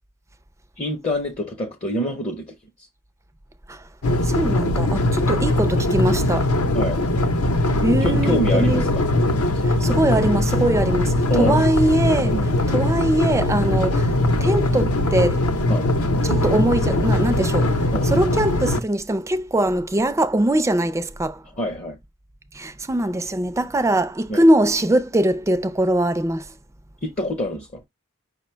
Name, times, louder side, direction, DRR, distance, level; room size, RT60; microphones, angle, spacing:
voice 1, 0.8-2.5 6.7-7.0 8.0-9.1 11.3-11.6 12.3-12.5 15.7-15.9 17.9-18.1 21.6-22.0 24.3-24.4 27.0-27.8, left 1 dB, 30° left, 0.6 m, -26 dB
sound 1, 4.0-18.8, left 1 dB, 70° left, 0.7 m, -20 dB
voice 2, 4.2-6.5 7.8-8.9 9.6-12.4 12.7-14.2 14.4-15.4 16.2-21.4 22.5-26.5, right 1 dB, 15° right, 0.4 m, -22 dB
5.5 x 2.1 x 4.4 m
head